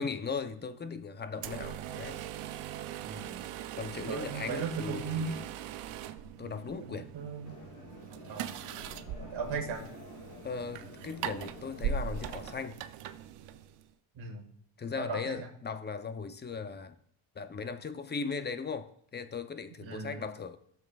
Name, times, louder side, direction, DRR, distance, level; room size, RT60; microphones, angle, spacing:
voice 1, 0.0-2.2 3.7-5.5 6.4-7.1 10.4-12.8 14.8-17.0 17.4-20.6, left 5 dB, 20° left, 0.6 m, -38 dB
sound 1, 1.4-13.9, right 8 dB, 85° right, 0.7 m, -40 dB
voice 2, 3.0-3.5 4.1-5.3 6.9-7.6 8.3-8.5 9.2-9.8 14.2-14.5 15.0-15.3 19.8-20.2, right 5 dB, 65° right, 1.8 m, -37 dB
sound 2, 7.4-12.7, left 3 dB, 35° left, 1.1 m, -51 dB
16.5 x 7.1 x 2.3 m
cardioid pair, 115°, 49 cm